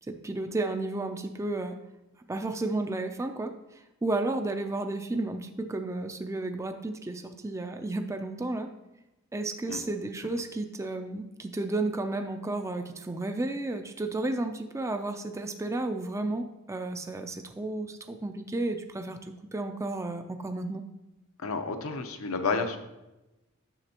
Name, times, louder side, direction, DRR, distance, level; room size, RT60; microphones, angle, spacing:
voice 1, 0.1-1.8 2.3-8.7 9.3-20.8, right 2 dB, 15° right, 6 dB, 0.4 m, -32 dB
voice 2, 21.4-22.8, left 4 dB, 85° left, 7 dB, 0.8 m, -30 dB
9.8 x 6.7 x 2.9 m, 0.98 s
head